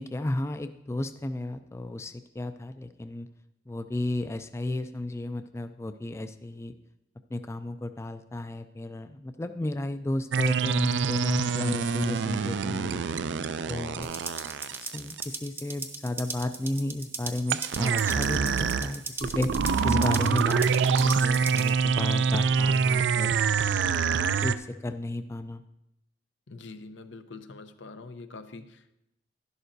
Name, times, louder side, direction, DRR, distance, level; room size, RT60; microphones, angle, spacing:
voice 1, 0.0-3.3 3.7-6.7 7.3-13.0 13.7-14.1 14.8-19.6 19.8-23.4 24.4-25.6, left 1 dB, 15° left, 9 dB, 0.3 m, -33 dB
sound 1, 10.3-15.2 17.5-24.5, right 6 dB, 75° right, 0.4 m, -26 dB
sound 2, 14.0-21.7, right 3 dB, 15° right, 0.6 m, -39 dB
voice 2, 26.5-29.0, left 3 dB, 90° left, 9 dB, 0.7 m, -44 dB
11.5 x 11.0 x 2.6 m, 0.86 s
head